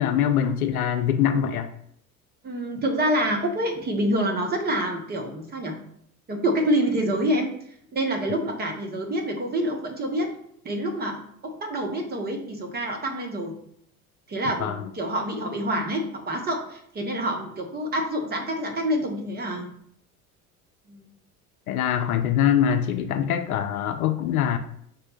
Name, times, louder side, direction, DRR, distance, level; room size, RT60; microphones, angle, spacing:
voice 1, 0.0-1.7 14.6-14.9 21.7-24.6, left 9 dB, 75° left, 8 dB, 0.5 m, -23 dB
voice 2, 2.4-5.8 6.3-7.5 7.9-10.3 10.6-13.6 14.3-19.7 20.9-21.0, right 1 dB, 20° right, 2 dB, 0.9 m, -27 dB
5.2 x 2.2 x 4.3 m, 0.68 s
figure-of-eight pair, 70°, 45 cm